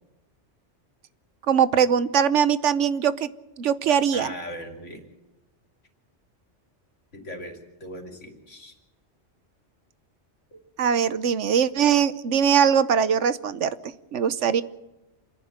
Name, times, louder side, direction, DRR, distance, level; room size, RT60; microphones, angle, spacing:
voice 1, 1.5-3.3 3.6-4.3 10.8-13.7 14.1-14.6, right 7 dB, 75° right, 15 dB, 1.2 m, -21 dB
voice 2, 3.9-5.0 7.1-8.7 10.5-10.6, left 1 dB, 80° left, 4 dB, 3.4 m, -39 dB
27.5 x 11.0 x 8.7 m, 1.0 s
omnidirectional pair, 1.2 m